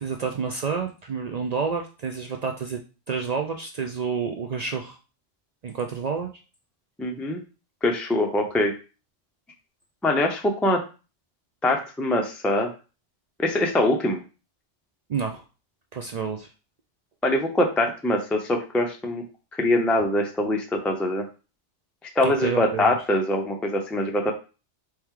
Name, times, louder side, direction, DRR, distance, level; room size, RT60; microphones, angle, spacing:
voice 1, 0.0-2.8 3.1-5.0 5.6-6.3 15.1-15.4 15.9-16.5 22.2-22.9, right 5 dB, 75° right, 4 dB, 0.3 m, -29 dB
voice 2, 7.0-7.4 7.8-8.7 10.0-10.8 11.6-12.7 13.4-14.2 17.2-19.2 19.5-21.2 22.2-24.3, left 1 dB, ahead, 2 dB, 0.4 m, -23 dB
4.5 x 3.0 x 3.7 m, 0.33 s
omnidirectional pair, 1.2 m